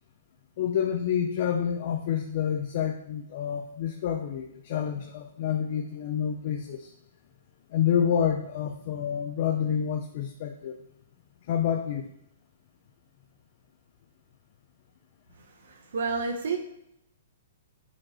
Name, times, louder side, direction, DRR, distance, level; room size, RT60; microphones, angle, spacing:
voice 1, 0.6-6.9 7.7-10.8 11.5-12.1, left 8 dB, 45° left, 4 dB, 0.7 m, -28 dB
voice 2, 15.9-16.6, right 4 dB, 75° right, 4 dB, 1.0 m, -28 dB
8.4 x 5.3 x 4.3 m, 0.77 s
hypercardioid pair, 160°, 0 cm